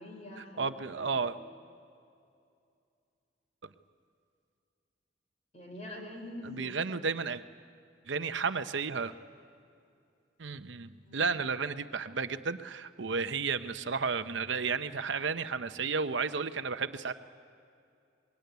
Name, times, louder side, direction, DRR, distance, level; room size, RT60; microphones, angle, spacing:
voice 1, 0.0-1.3 5.5-7.0 11.0-11.2, left 1 dB, 35° left, 2 dB, 4.7 m, -45 dB
voice 2, 0.6-1.4 6.4-7.4 8.1-9.1 10.4-17.1, right 5 dB, 75° right, 10 dB, 0.8 m, -32 dB
24.5 x 21.0 x 9.3 m, 2.5 s
head